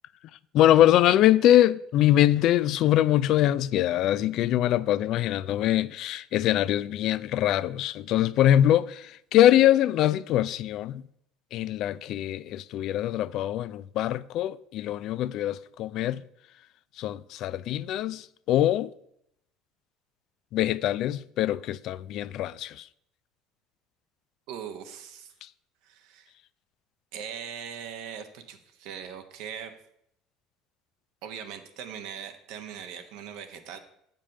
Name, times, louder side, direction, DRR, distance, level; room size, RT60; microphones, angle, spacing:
voice 1, 0.5-11.0 11.5-16.2 17.0-18.9 20.5-22.9, left 12 dB, 60° left, 0.3 m, -23 dB
voice 2, 24.5-25.3 25.8-26.3 27.1-29.7 31.2-33.8, right 8 dB, 70° right, 1.1 m, -40 dB
7.2 x 5.2 x 6.5 m
supercardioid pair, 85°, 0 cm